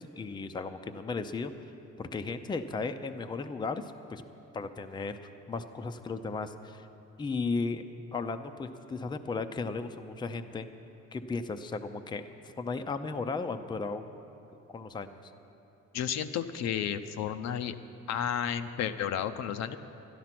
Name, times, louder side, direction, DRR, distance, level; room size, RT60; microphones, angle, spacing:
voice 1, 0.0-1.5 2.0-4.2 4.5-5.2 5.5-6.9 7.2-7.8 8.1-10.7 11.1-14.0 14.7-15.2, left 4 dB, 15° left, 8 dB, 0.5 m, -35 dB
voice 2, 15.9-17.8 18.1-19.8, left 9 dB, 65° left, 9 dB, 0.6 m, -32 dB
12.0 x 11.0 x 5.9 m, 3.0 s
cardioid pair, 110°, 29 cm